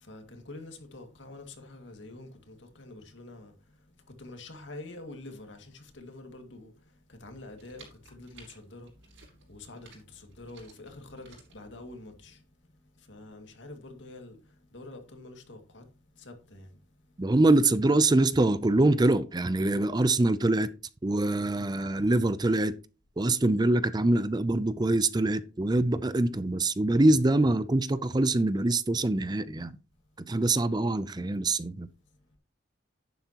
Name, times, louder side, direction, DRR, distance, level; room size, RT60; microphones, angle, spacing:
voice 1, 0.0-3.5 4.2-6.7 7.2-8.9 9.5-12.4 13.1-14.4 14.7-15.8 16.2-16.7, left 2 dB, 75° left, 2.2 m, -46 dB
sound 1, 7.2-12.3, right 3 dB, 80° right, 6.2 m, -56 dB
voice 2, 17.2-20.7 21.0-22.8 23.2-29.7 30.3-31.9, right 2 dB, 20° right, 0.5 m, -24 dB
11.0 x 9.4 x 2.9 m
head